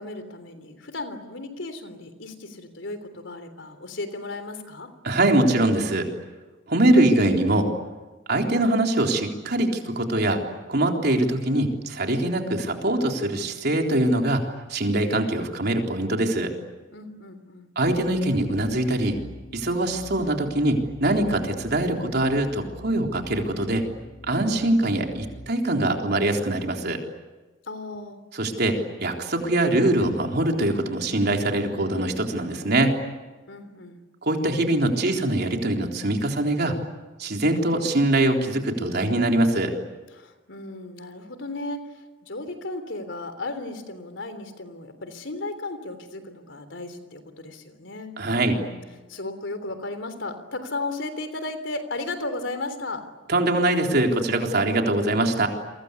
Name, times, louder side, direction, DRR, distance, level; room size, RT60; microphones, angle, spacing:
voice 1, 0.0-4.9 16.9-17.7 27.7-28.2 33.5-34.0 40.1-48.2 48.4-48.8 49.1-53.0, left 2 dB, 85° left, 9 dB, 3.5 m, -35 dB
voice 2, 5.0-6.1 6.7-7.7 8.3-10.4 10.7-16.5 17.8-19.2 19.5-23.8 24.3-27.0 28.3-33.0 34.2-36.7 37.2-39.7 48.2-48.6 53.3-55.5, right 1 dB, 60° right, 2 dB, 3.8 m, -23 dB
sound 1, 17.8-25.5, equal, 60° left, 3.7 m, -45 dB
30.0 x 23.5 x 8.4 m, 1.2 s
head